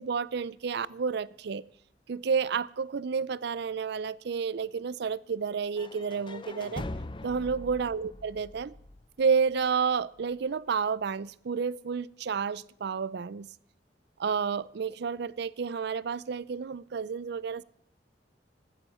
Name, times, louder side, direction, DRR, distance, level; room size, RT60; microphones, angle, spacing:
voice 1, 0.0-1.6 2.1-6.9 7.2-8.7 9.2-13.5 14.2-17.6, right 6 dB, 65° right, 0.5 m, -30 dB
sound 1, 5.8-9.7, left 2 dB, 30° left, 0.7 m, -42 dB
14.5 x 14.5 x 4.3 m
head